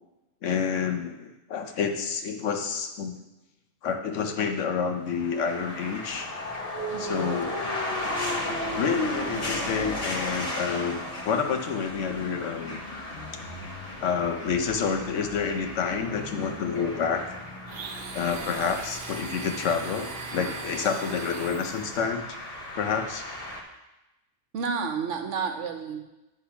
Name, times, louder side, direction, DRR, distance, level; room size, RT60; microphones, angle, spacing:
voice 1, 0.4-3.2 3.8-6.3 7.0-7.5 8.7-12.8 14.0-17.4 18.1-22.4 22.7-23.3, left 6 dB, 75° left, 6 dB, 1.1 m, -28 dB
sound 1, 5.0-23.6, left 1 dB, 30° left, 1.1 m, -35 dB
Domestic sounds home sounds, 17.7-22.1, right 5 dB, 50° right, 0.7 m, -39 dB
voice 2, 24.5-26.0, right 5 dB, 75° right, 6 dB, 1.1 m, -31 dB
10.0 x 3.5 x 5.7 m, 0.99 s
omnidirectional pair, 1.3 m